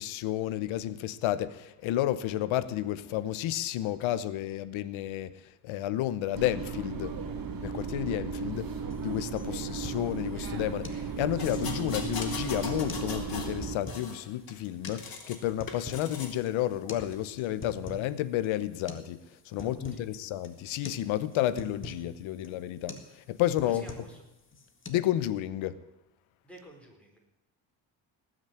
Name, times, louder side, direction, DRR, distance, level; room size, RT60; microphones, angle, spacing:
voice 1, 0.0-5.3 5.6-7.2 7.6-8.7 9.0-23.9 24.9-25.8, left 13 dB, 85° left, 1.0 m, -31 dB
sound 1, 6.3-13.8, right 5 dB, 45° right, 2.3 m, -35 dB
sound 2, 8.9-9.0 9.4-10.1 10.4-10.5 10.8-11.0 11.4-12.2 12.7-13.1 13.4-14.1 14.9-15.0 15.4-16.1 16.4-16.5 16.9-17.1 17.4-18.1 18.4-18.5 18.9-19.1 19.4-20.1 20.4-20.6 20.8-21.0 21.3-22.0 22.4-22.6 22.9-23.1 23.4-24.2 24.5-24.9, left 2 dB, 25° left, 1.8 m, -43 dB
sound 3, 11.4-13.6 13.9-15.4 15.7-16.4 17.0-17.2, left 5 dB, 50° left, 2.9 m, -40 dB
voice 2, 19.5-20.0 23.6-24.2 26.4-27.2, right 1 dB, 5° left, 4.8 m, -51 dB
18.5 x 6.5 x 8.9 m
cardioid pair, 85°, 46 cm